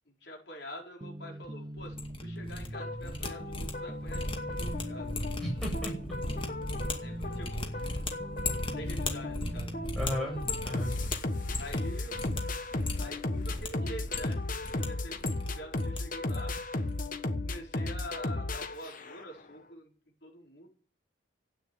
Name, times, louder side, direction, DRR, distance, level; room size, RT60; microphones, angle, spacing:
voice 1, 0.1-5.1 7.0-7.7 8.7-9.7 10.1-10.4 11.6-12.2 13.0-14.4 14.8-16.5 17.4-19.9 20.2-20.7, equal, 65° left, 0 dB, 4.9 m, -46 dB
sound 1, 1.0-10.6, right 1 dB, 25° right, 0.8 m, -42 dB
sound 2, 1.8-2.7 2.9-11.9 12.1-12.4 12.7-13.7 14.0-14.9 15.1-16.0 16.3-16.6 16.8-17.1, left 2 dB, 25° left, 2.2 m, -37 dB
sound 3, 2.7-19.4, left 2 dB, 45° left, 1.3 m, -36 dB
voice 2, 5.4-5.9 10.0-10.9, equal, ahead, -3 dB, 7.5 m, -34 dB
13.5 x 9.3 x 9.5 m, 0.41 s
head